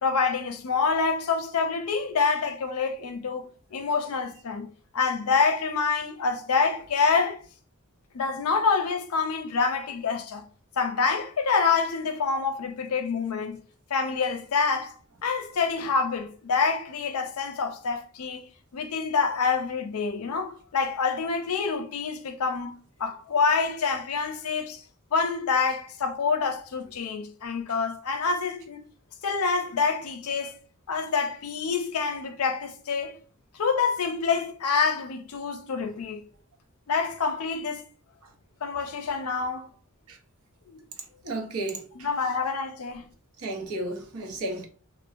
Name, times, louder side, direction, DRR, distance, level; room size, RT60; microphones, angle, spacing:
voice 1, 0.0-4.7 4.9-7.4 8.1-10.4 10.8-13.6 13.9-14.9 15.2-18.4 18.7-24.8 25.1-28.8 29.2-30.6 30.9-33.2 33.6-36.2 36.9-37.8 38.6-39.7 40.7-40.8 41.9-43.1, left 5 dB, 75° left, 0.5 m, -27 dB
voice 2, 41.2-41.8 43.4-44.7, right 2 dB, 80° right, 0.7 m, -32 dB
3.0 x 2.0 x 2.5 m
head